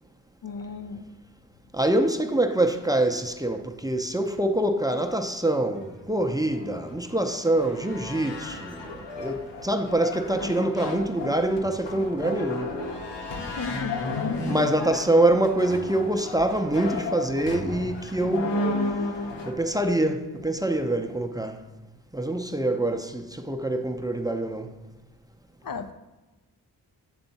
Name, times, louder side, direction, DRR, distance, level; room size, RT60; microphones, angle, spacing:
voice 1, 0.4-1.1 13.4-14.6 25.6-25.9, left 5 dB, 55° left, 0.5 m, -35 dB
voice 2, 1.7-12.7 14.5-18.6 19.5-21.6 22.1-24.7, right 1 dB, 10° right, 0.6 m, -25 dB
sound 1, 6.0-19.5, left 2 dB, 75° left, 1.1 m, -33 dB
7.9 x 3.5 x 4.1 m
supercardioid pair, 45°, 43 cm